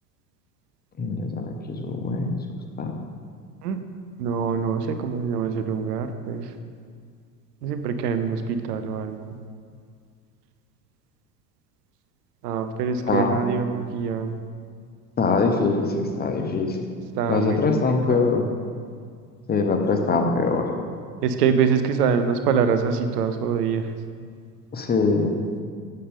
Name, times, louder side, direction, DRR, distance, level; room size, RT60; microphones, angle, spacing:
voice 1, 1.0-2.4 2.8-2.9 13.1-13.4 15.2-16.9 17.3-18.5 19.5-20.7 24.7-25.4, left 4 dB, 20° left, 3 dB, 0.8 m, -23 dB
voice 2, 4.2-6.5 7.6-9.4 12.4-14.3 17.2-17.6 18.1-18.2 21.2-23.9, right 6 dB, 75° right, 8 dB, 0.7 m, -24 dB
8.5 x 6.6 x 3.6 m, 2.1 s
hypercardioid pair, 80°, 49 cm